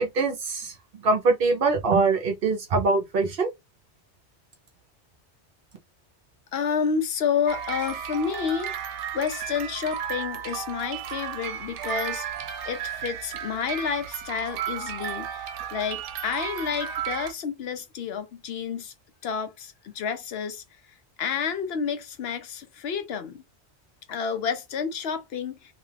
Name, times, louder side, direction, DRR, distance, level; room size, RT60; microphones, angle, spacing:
voice 1, 0.0-3.5, right 3 dB, 60° right, 0.8 m, -23 dB
voice 2, 6.5-8.7 9.1-12.3 12.7-18.9 19.2-20.6 21.2-23.4 24.1-25.7, left 6 dB, 65° left, 0.8 m, -30 dB
sound 1, 7.5-17.3, right 9 dB, 85° right, 0.9 m, -34 dB
2.8 x 2.3 x 3.2 m
omnidirectional pair, 1.2 m